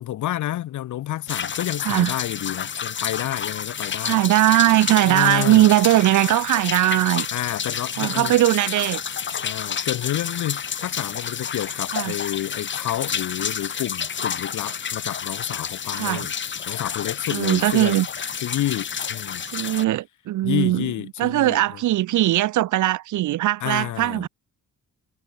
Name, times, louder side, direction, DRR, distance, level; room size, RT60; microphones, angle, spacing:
voice 1, 0.0-4.2 5.1-5.7 7.3-8.3 9.3-16.3 16.7-18.0 18.4-19.4 20.4-21.8 23.6-24.3, left 13 dB, 60° left, 1.8 m, -29 dB
sound 1, 1.3-19.8, left 7 dB, 35° left, 4.5 m, -30 dB
voice 2, 4.0-7.3 8.0-9.0 11.9-12.1 15.9-16.3 17.3-18.1 19.5-20.9 21.2-24.3, right 15 dB, 65° right, 1.1 m, -20 dB
cardioid pair, 155°, 33 cm